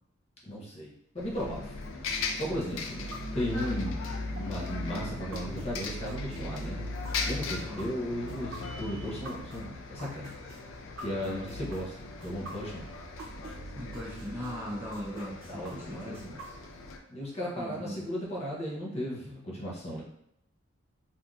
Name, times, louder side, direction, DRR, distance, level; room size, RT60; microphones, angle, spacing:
voice 1, 0.5-1.8 2.3-6.9 7.3-10.3 11.0-12.9 15.5-16.4 17.1-20.0, equal, 30° left, -4 dB, 0.7 m, -36 dB
Bus, 1.2-17.0, left 3 dB, 70° left, 0.4 m, -38 dB
voice 2, 2.5-3.2 7.7-7.9 11.2-11.5 13.7-16.2 17.6-18.0 20.0-20.1, equal, 10° right, -6 dB, 0.7 m, -40 dB
sound 1, 2.7-13.5 13.9-16.9, right 2 dB, 75° right, 0.7 m, -47 dB
3.3 x 2.6 x 2.3 m, 0.76 s
head